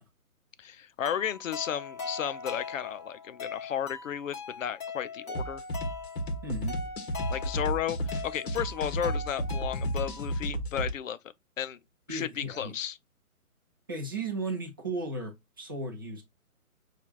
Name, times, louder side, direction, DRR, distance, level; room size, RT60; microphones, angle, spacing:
voice 1, 0.6-5.6 7.3-11.2 11.6-11.8 12.1-13.0, left 9 dB, 65° left, 0.5 m, -33 dB
sound 1, 1.0-10.4, left 4 dB, 20° left, 1.3 m, -41 dB
sound 2, 5.3-10.9, equal, 45° left, 1.2 m, -33 dB
voice 2, 6.4-6.8 12.1-12.7 13.9-16.2, right 2 dB, 15° right, 0.5 m, -35 dB
6.7 x 2.4 x 2.8 m
hypercardioid pair, 150°, 43 cm